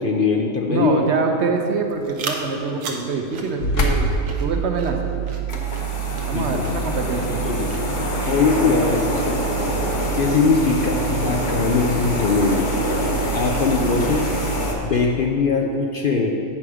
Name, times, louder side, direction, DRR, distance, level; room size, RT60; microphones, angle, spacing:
voice 1, 0.0-1.0 6.3-6.6 7.4-7.7 8.3-9.2 10.1-12.7 13.3-14.2 14.8-16.3, left 4 dB, 55° left, 1 dB, 0.6 m, -21 dB
voice 2, 0.7-4.1 4.4-5.0 6.3-7.4 13.5-13.9, right 4 dB, 60° right, 3 dB, 0.9 m, -25 dB
sound 1, 1.8-14.6, right 3 dB, 80° right, 1.2 m, -40 dB
sound 2, 3.6-14.6, right 6 dB, 70° left, 1.3 m, -27 dB
sound 3, 5.5-14.7, left 1 dB, 40° left, 1.1 m, -26 dB
8.5 x 5.9 x 4.9 m, 2.5 s
omnidirectional pair, 1.4 m